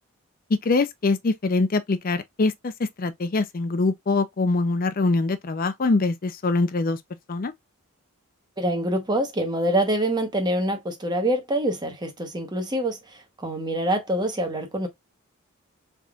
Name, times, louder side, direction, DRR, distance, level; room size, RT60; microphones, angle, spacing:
voice 1, 0.5-7.0 7.3-7.5, left 3 dB, 40° left, 0.5 m, -23 dB
voice 2, 8.6-14.9, right 1 dB, 20° right, 0.9 m, -25 dB
3.9 x 3.5 x 2.4 m
head